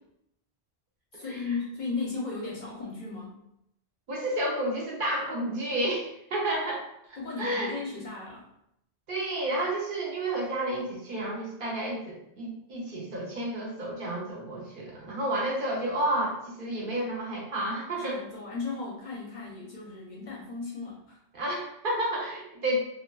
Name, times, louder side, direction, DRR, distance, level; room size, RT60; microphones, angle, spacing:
voice 1, 1.1-3.4 7.2-8.5 18.0-21.2, left 4 dB, 55° left, -3 dB, 0.6 m, -36 dB
voice 2, 4.1-7.7 9.1-18.2 21.3-22.8, right 1 dB, 60° right, -3 dB, 0.8 m, -31 dB
2.5 x 2.2 x 2.2 m, 0.77 s
omnidirectional pair, 1.1 m